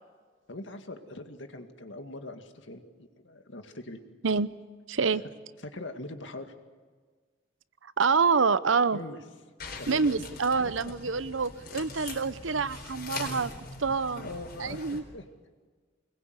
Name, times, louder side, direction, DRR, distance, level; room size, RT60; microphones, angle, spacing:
voice 1, 0.5-4.0 5.1-5.2 5.6-6.5 8.9-9.2 9.8-10.3 10.5-10.9 13.2-13.3 13.9-14.0 14.2-15.3, left 2 dB, 70° left, 6 dB, 2.1 m, -42 dB
voice 2, 4.9-5.2 8.0-9.0 9.9-13.5 13.8-14.3 14.6-15.0, right 5 dB, 80° right, 16 dB, 0.8 m, -26 dB
sound 1, 9.6-15.0, left 3 dB, 50° left, 4.2 m, -42 dB
24.5 x 21.5 x 8.1 m, 1.4 s
head